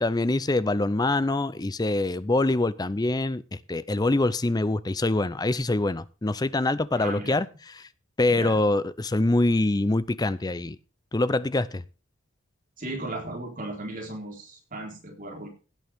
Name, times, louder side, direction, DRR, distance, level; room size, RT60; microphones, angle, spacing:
voice 1, 0.0-7.5 7.8-7.9 8.2-10.8 11.1-11.8, left 2 dB, 20° left, 0.5 m, -24 dB
voice 2, 7.0-7.4 8.3-8.6 12.8-15.5, right 2 dB, 40° right, 4.1 m, -36 dB
17.0 x 9.1 x 3.6 m
head